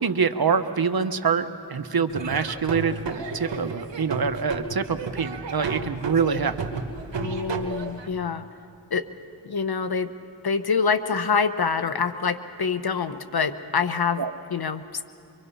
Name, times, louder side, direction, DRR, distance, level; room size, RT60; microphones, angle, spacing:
voice 1, 0.0-6.6 14.2-14.3, right 5 dB, 60° right, 9 dB, 1.1 m, -25 dB
Laughter / Drum, 2.1-8.1, right 4 dB, 85° right, 1.4 m, -32 dB
voice 2, 7.1-8.4 8.9-9.0 9.4-10.1 10.4-14.2 14.5-15.0, left 5 dB, 60° left, 11 dB, 1.1 m, -26 dB
24.0 x 23.5 x 5.6 m, 2.8 s
cardioid pair, 45°, 42 cm